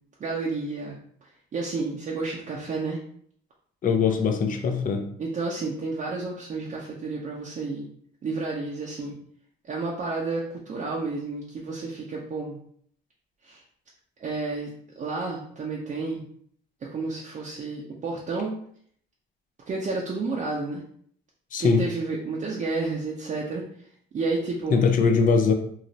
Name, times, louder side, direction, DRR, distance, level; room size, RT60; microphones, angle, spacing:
voice 1, 0.2-3.0 5.2-7.9 8.2-9.2 9.6-12.6 13.4-13.6 14.2-14.7 15.0-16.2 16.8-18.5 19.7-20.8 21.6-23.9 24.1-24.8, right 3 dB, 40° right, -3 dB, 0.5 m, -31 dB
voice 2, 3.8-5.1 21.5-21.8 24.7-25.5, left 5 dB, 45° left, 6 dB, 0.5 m, -21 dB
3.0 x 2.4 x 2.7 m, 0.63 s
cardioid pair, 90°, 20 cm